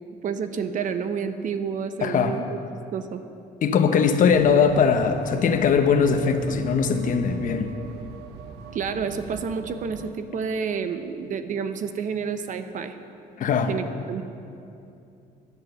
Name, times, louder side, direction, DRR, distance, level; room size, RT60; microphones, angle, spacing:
voice 1, 0.2-2.6 2.9-3.2 8.7-13.0 13.7-14.2, right 6 dB, 50° right, 9 dB, 0.8 m, -29 dB
voice 2, 2.0-2.4 3.6-7.7 13.4-13.7, left 6 dB, 50° left, 7 dB, 1.0 m, -20 dB
sound 1, 4.3-10.1, right 7 dB, 80° right, 0.8 m, -41 dB
11.0 x 9.5 x 6.8 m, 2.6 s
cardioid pair, 110°, 17 cm